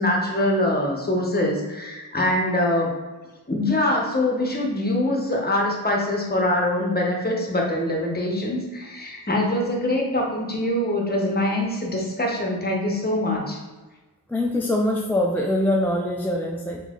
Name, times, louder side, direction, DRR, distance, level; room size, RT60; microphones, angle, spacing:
voice 1, 0.0-2.9 3.5-13.6, left 1 dB, 25° left, -1 dB, 1.0 m, -24 dB
voice 2, 14.3-16.8, left 1 dB, 5° left, -1 dB, 0.3 m, -23 dB
3.1 x 3.0 x 3.7 m, 1.2 s
wide cardioid pair, 65°, 40 cm